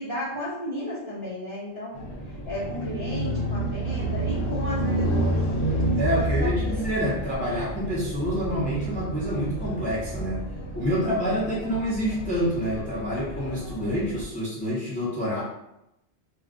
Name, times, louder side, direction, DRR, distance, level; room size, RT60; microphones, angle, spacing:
voice 1, 0.0-2.1 2.5-5.4 6.1-6.8, equal, 30° right, -9 dB, 0.8 m, -34 dB
sound 1, 1.9-14.2, right 1 dB, 70° left, 0.9 m, -30 dB
voice 2, 5.9-10.4 10.7-15.4, equal, 10° left, -8 dB, 0.6 m, -27 dB
2.4 x 2.3 x 3.5 m, 0.87 s
omnidirectional pair, 1.2 m